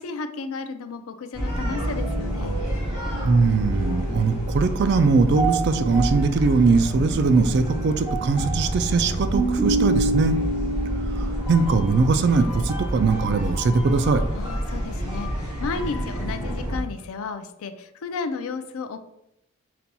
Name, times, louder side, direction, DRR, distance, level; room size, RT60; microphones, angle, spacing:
voice 1, 0.0-2.6 14.3-19.0, left 4 dB, 80° left, 9 dB, 0.4 m, -33 dB
sound 1, 1.3-16.8, right 1 dB, 20° right, 1.2 m, -27 dB
voice 2, 3.2-10.4 11.2-14.2, right 4 dB, 50° right, 9 dB, 0.3 m, -21 dB
4.1 x 2.2 x 4.0 m, 0.80 s
head